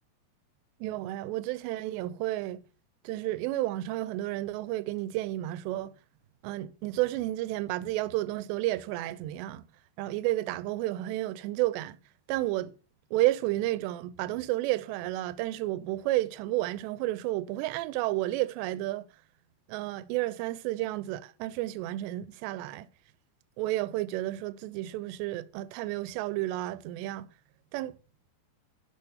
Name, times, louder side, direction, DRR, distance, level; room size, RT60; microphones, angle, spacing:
voice 1, 0.8-2.6 3.0-5.9 6.4-9.7 10.0-12.0 12.3-12.7 13.1-19.1 19.7-22.9 23.6-27.3 27.7-28.0, right 16 dB, 85° right, 2.8 m, -31 dB
11.0 x 6.6 x 5.5 m
omnidirectional pair, 4.9 m